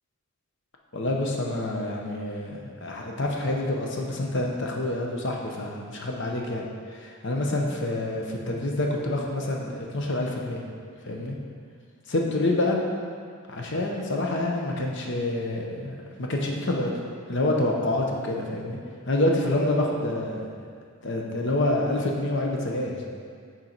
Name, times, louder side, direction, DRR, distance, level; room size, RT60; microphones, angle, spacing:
voice 1, 0.9-6.6 6.9-10.6 11.0-11.4 12.1-12.8 13.5-16.9 17.3-18.8 19.1-20.5 21.0-22.9, left 1 dB, 55° left, 0 dB, 0.8 m, -27 dB
6.5 x 4.4 x 4.5 m, 2.1 s
head